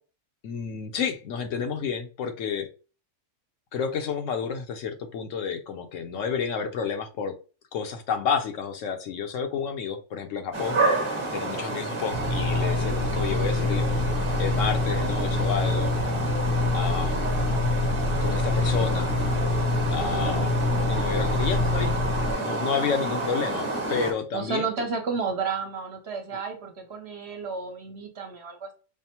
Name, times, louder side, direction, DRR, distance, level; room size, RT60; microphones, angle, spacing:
voice 1, 0.4-2.7 3.7-7.4 7.7-10.8 11.3-13.9 14.4-15.9 16.7-17.2 18.2-19.1 19.9-20.5 20.9-21.9 22.4-24.7, left 6 dB, 70° left, 1.0 m, -30 dB
sound 1, 10.5-24.1, right 2 dB, 25° right, 0.8 m, -30 dB
sound 2, 12.1-22.3, left 3 dB, 85° left, 1.3 m, -26 dB
voice 2, 20.0-20.5 24.3-28.7, right 5 dB, 55° right, 0.9 m, -32 dB
5.3 x 2.0 x 2.8 m
omnidirectional pair, 1.4 m